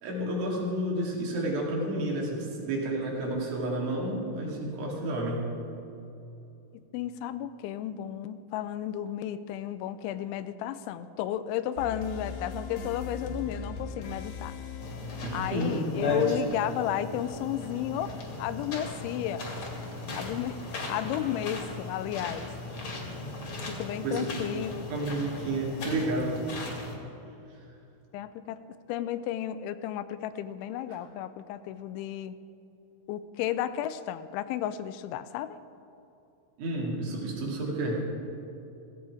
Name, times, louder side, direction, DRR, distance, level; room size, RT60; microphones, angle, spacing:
voice 1, 0.0-5.5 15.2-15.8 24.0-24.3 24.9-26.4 36.6-38.0, right 1 dB, 75° right, -3 dB, 5.1 m, -30 dB
voice 2, 6.9-14.6 15.3-19.5 20.2-20.6 20.9-22.5 23.7-24.9 28.1-28.6 28.9-32.4 33.1-35.6, left 11 dB, 85° left, 13 dB, 2.9 m, -33 dB
sound 1, 11.8-18.5, left 4 dB, 70° left, 2.7 m, -41 dB
sound 2, 14.8-27.0, left 2 dB, 45° left, 2.0 m, -36 dB
16.5 x 15.5 x 4.8 m, 2.8 s
omnidirectional pair, 5.4 m